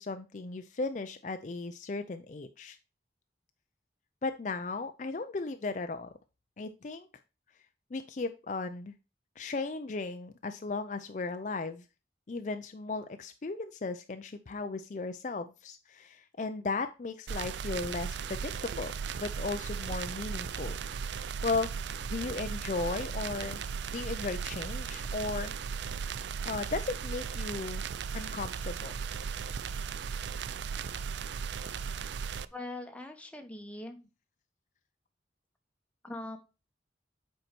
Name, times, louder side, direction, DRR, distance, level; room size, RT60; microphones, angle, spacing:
voice 1, 0.0-2.8 4.2-6.1 6.6-7.1 7.9-8.9 9.4-11.8 12.3-18.9 19.2-21.7 22.1-23.6 23.9-25.5 26.4-27.8 28.1-28.9, left 3 dB, 40° left, 8 dB, 0.4 m, -36 dB
sound 1, 17.3-32.5, right 6 dB, 75° right, 0.4 m, -36 dB
voice 2, 32.5-34.0 36.0-36.4, left 2 dB, 5° left, 5 dB, 0.9 m, -41 dB
7.8 x 4.6 x 4.4 m, 0.30 s
head